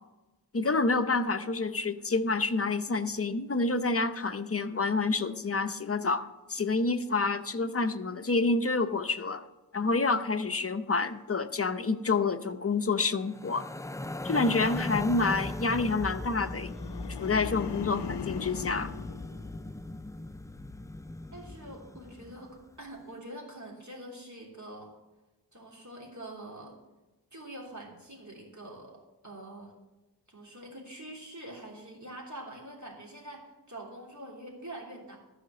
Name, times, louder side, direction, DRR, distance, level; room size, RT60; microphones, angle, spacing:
voice 1, 0.5-9.4 9.7-13.6 14.2-16.7 17.2-18.9, left 3 dB, 35° left, 9 dB, 0.7 m, -28 dB
sound 1, 13.3-22.6, left 1 dB, 10° left, 0.3 m, -38 dB
sound 2, 16.6-20.1 20.5-20.9, left 8 dB, 80° left, 0.5 m, -41 dB
voice 2, 21.3-24.9 25.5-26.8 27.3-29.7 30.3-35.2, right 1 dB, 45° right, -2 dB, 3.0 m, -45 dB
13.0 x 5.0 x 7.4 m, 1.1 s
wide cardioid pair, 50°, 40 cm